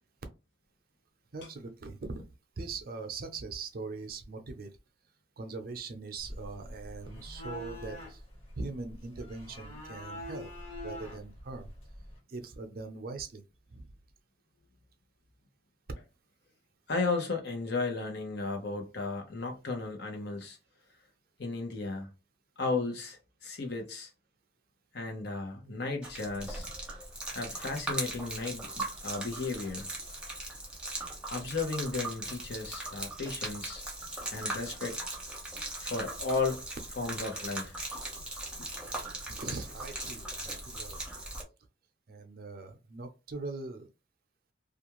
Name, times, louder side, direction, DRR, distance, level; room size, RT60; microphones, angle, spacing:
voice 1, 1.3-2.3 2.6-4.7 5.4-8.2 8.5-10.5 10.8-11.7 12.3-13.4 13.7-13.9 38.9-41.0 42.1-43.9, right 3 dB, 55° right, 0.5 m, -41 dB
sound 1, 6.2-12.2, left 1 dB, 35° left, 1.4 m, -44 dB
voice 2, 16.9-20.6 21.4-22.1 22.6-24.1 24.9-26.7 27.3-29.9 31.3-33.8 34.3-35.0 35.8-36.6 37.0-37.7 38.6-38.7, left 3 dB, 70° left, 0.9 m, -34 dB
Gurgling / Liquid, 26.0-41.4, right 2 dB, 5° right, 0.7 m, -39 dB
2.5 x 2.3 x 3.0 m
head